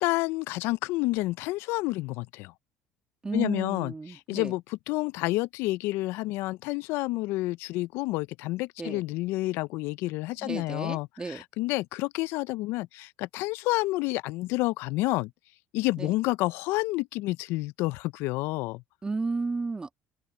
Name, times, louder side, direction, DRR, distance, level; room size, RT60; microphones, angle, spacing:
voice 1, 0.0-2.5 3.3-15.3 15.7-18.8, left 20 dB, 70° left, 0.5 m, -29 dB
voice 2, 3.2-4.5 8.8-9.0 10.4-11.4 16.0-16.1 19.0-19.9, right 3 dB, 20° right, 2.0 m, -33 dB
open air
supercardioid pair, 85°, 4 cm